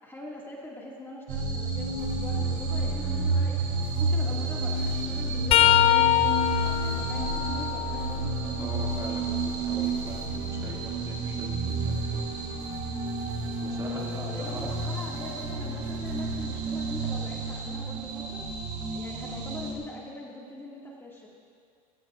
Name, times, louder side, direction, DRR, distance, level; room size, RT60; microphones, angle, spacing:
voice 1, 0.0-3.6 4.0-9.4 13.7-18.4 18.9-21.3, left 1 dB, 10° left, -4 dB, 2.0 m, -42 dB
sound 1, 1.3-19.7, right 2 dB, 50° right, 3.4 m, -30 dB
sound 2, 2.0-19.4, right 5 dB, 85° right, 2.3 m, -47 dB
sound 3, 5.5-9.3 9.8-11.7 14.7-14.8 16.1-16.3 17.6-17.7, left 13 dB, 35° left, 0.4 m, -26 dB
voice 2, 8.6-12.2 13.6-14.7, right 2 dB, 20° right, -3 dB, 2.3 m, -42 dB
20.0 x 16.5 x 2.4 m, 2.2 s
supercardioid pair, 125°, 18 cm